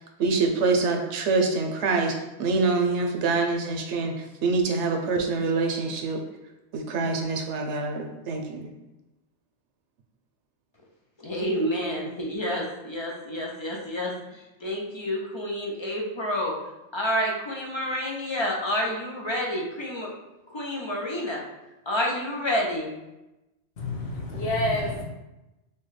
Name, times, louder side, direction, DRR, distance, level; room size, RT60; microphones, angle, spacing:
voice 1, 0.2-4.1 4.4-6.2 6.7-8.7, right 3 dB, 90° right, 3 dB, 1.0 m, -25 dB
voice 2, 11.2-16.5 16.9-20.1 20.5-21.4 21.9-22.9, equal, 30° left, -2 dB, 0.6 m, -29 dB
voice 3, 23.8-25.0, left 1 dB, 70° left, -3 dB, 1.2 m, -28 dB
5.9 x 2.2 x 3.2 m, 0.99 s
omnidirectional pair, 1.2 m